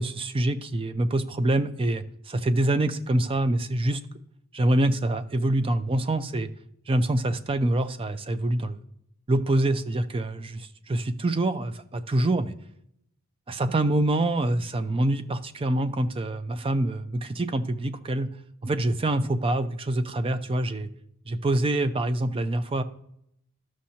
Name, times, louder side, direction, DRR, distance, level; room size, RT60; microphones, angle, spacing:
voice 1, 0.0-4.0 4.5-6.5 6.9-8.8 9.3-12.5 13.5-18.3 18.6-20.9 21.3-22.8, right 1 dB, 25° right, 11 dB, 0.4 m, -25 dB
13.0 x 6.3 x 2.8 m, 0.75 s
head